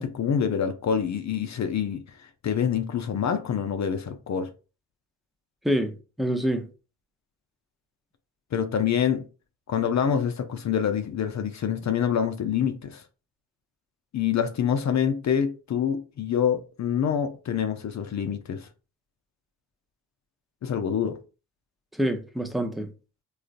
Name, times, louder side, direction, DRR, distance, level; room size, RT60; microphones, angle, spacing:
voice 1, 0.0-4.5 8.5-9.2 9.7-13.0 14.1-18.7 20.6-21.2, left 8 dB, 45° left, 0.5 m, -26 dB
voice 2, 5.6-6.7 21.9-22.9, equal, ahead, 0.6 m, -26 dB
3.7 x 2.4 x 2.5 m
supercardioid pair, 50°, 42 cm